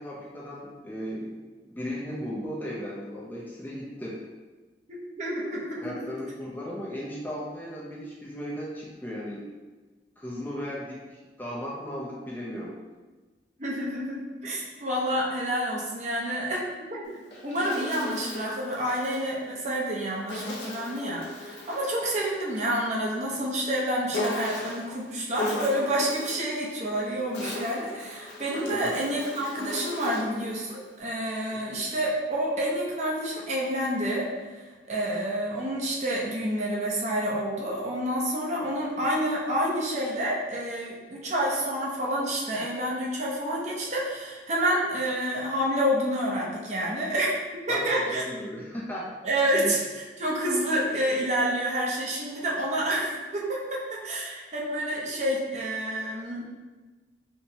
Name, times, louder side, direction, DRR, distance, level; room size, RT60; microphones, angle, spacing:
voice 1, 0.0-1.3 1.7-4.2 5.8-9.5 10.2-11.0 11.4-12.8 28.7-28.9 31.5-31.6 47.7-47.9 48.1-49.1 49.5-49.7, equal, 10° left, -5 dB, 0.4 m, -36 dB
voice 2, 4.9-6.1 13.6-16.6 16.9-17.0 17.4-47.3 47.7-48.2 49.2-56.5, equal, 40° right, -4 dB, 0.7 m, -28 dB
Insect, 17.0-19.2 20.3-22.4 24.1-24.9 25.4-26.5 27.1-30.4, left 1 dB, 75° left, 0.7 m, -36 dB
4.4 x 2.1 x 2.7 m, 1.3 s
head